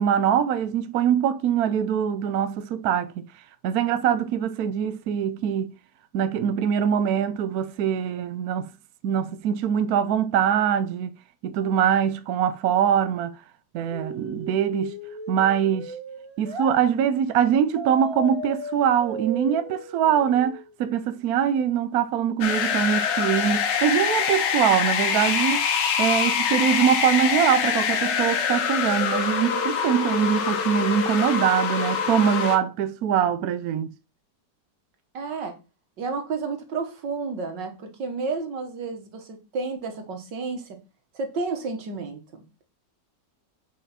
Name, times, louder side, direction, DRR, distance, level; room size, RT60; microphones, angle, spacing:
voice 1, 0.0-3.2 3.6-5.7 6.1-8.7 9.0-11.1 11.4-13.4 13.7-15.0 15.3-15.9 16.4-25.7 26.0-33.9, right 8 dB, 65° right, 1.0 m, -23 dB
sound 1, 13.9-16.7 17.8-20.8, right 2 dB, 20° right, 1.1 m, -36 dB
sound 2, 22.4-32.6, left 7 dB, 85° left, 1.6 m, -24 dB
voice 2, 35.1-35.6 36.0-40.8 41.1-42.2, right 4 dB, 85° right, 2.1 m, -31 dB
7.5 x 4.9 x 4.2 m
omnidirectional pair, 1.9 m